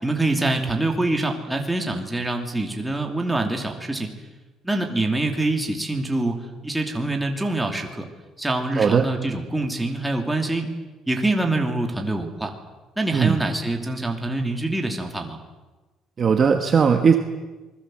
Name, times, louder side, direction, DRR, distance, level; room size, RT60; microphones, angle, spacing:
voice 1, 0.0-4.1 4.6-8.1 8.4-10.7 11.1-12.5 13.0-15.4, right 2 dB, 5° right, 2 dB, 2.7 m, -25 dB
voice 2, 8.7-9.1 13.1-13.4 16.2-17.2, right 6 dB, 30° right, 5 dB, 1.4 m, -18 dB
28.0 x 20.5 x 7.7 m, 1.2 s
cardioid pair, 165°, 0 cm